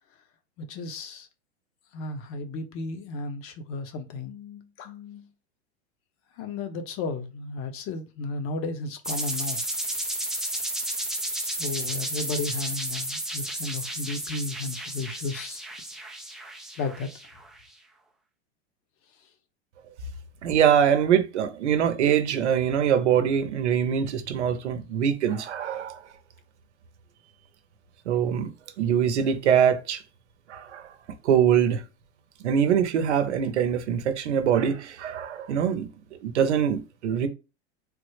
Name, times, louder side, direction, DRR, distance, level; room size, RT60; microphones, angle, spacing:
voice 1, 0.6-1.3 1.9-5.3 6.4-9.6 11.3-15.6 16.8-17.1, left 3 dB, 40° left, 0.7 m, -34 dB
sound 1, 9.0-17.6, right 1 dB, ahead, 0.3 m, -32 dB
voice 2, 20.4-26.0 28.1-28.5 28.8-30.0 30.5-30.9 31.2-31.8 32.4-35.9 36.2-37.3, right 8 dB, 85° right, 0.7 m, -23 dB
3.3 x 2.0 x 3.2 m
hypercardioid pair, 110°, 34 cm